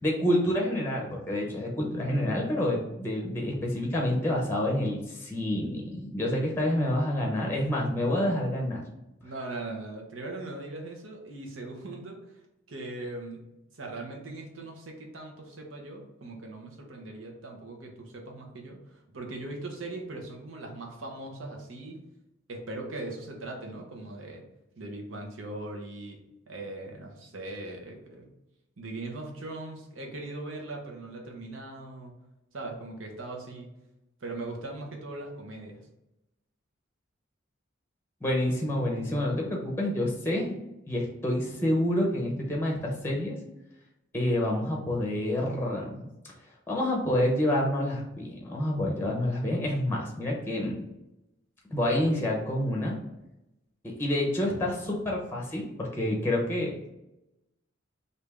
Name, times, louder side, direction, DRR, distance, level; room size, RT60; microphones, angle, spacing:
voice 1, 0.0-8.8 38.2-40.5 40.9-43.4 44.1-46.0 46.7-50.9 51.7-52.9 53.8-56.9, left 1 dB, 10° left, -1 dB, 0.7 m, -28 dB
voice 2, 9.2-12.2 12.7-13.4 13.7-22.0 22.5-24.4 24.8-26.2 26.5-28.2 28.8-32.1 32.5-33.7 34.2-35.8, right 2 dB, 85° right, 1 dB, 0.9 m, -40 dB
3.3 x 2.7 x 3.4 m, 0.90 s
head